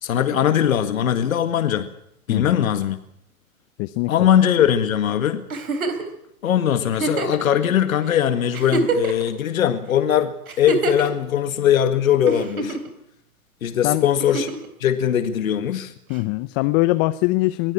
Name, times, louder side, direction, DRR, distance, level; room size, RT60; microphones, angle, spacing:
voice 1, 0.0-1.9 2.3-3.0 4.1-5.4 6.4-12.8 13.6-14.5 14.8-15.9, left 10 dB, 75° left, 9 dB, 1.9 m, -20 dB
voice 2, 2.3-2.7 3.8-4.3 13.8-14.1 16.1-17.7, left 20 dB, 40° left, 13 dB, 0.9 m, -22 dB
Giggle, 5.5-6.1 6.9-7.4 8.1-8.2 8.5-9.3 10.5-11.1 12.3-12.9 14.2-14.7 16.1-16.2, right 3 dB, 85° right, 3.6 m, -25 dB
23.5 x 16.5 x 8.7 m, 0.75 s
hypercardioid pair, 115°, 42 cm